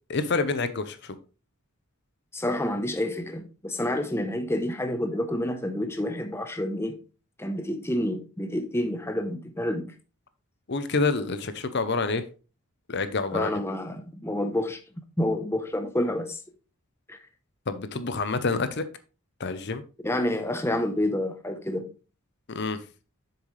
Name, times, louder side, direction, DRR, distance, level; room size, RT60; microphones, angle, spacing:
voice 1, 0.1-1.1 10.7-12.2 12.9-13.5 17.7-18.8 19.4-19.8 22.5-22.8, left 3 dB, 50° left, 0.7 m, -27 dB
voice 2, 2.3-7.0 7.4-9.9 13.3-14.8 15.2-16.4 17.1-17.2 20.0-21.9, left 1 dB, 10° left, 0.8 m, -28 dB
7.6 x 6.9 x 3.2 m
head